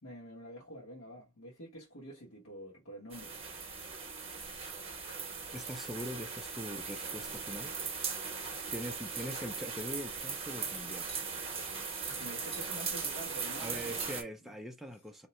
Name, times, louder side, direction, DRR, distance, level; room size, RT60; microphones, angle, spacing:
voice 1, 0.0-3.4 11.8-14.2, equal, 65° left, 1.3 m, -48 dB
sound 1, 3.1-14.2, right 5 dB, 25° right, 0.9 m, -39 dB
voice 2, 4.3-5.1 5.5-7.8 8.7-11.2 13.6-15.3, equal, ahead, 0.4 m, -43 dB
2.8 x 2.2 x 4.1 m
head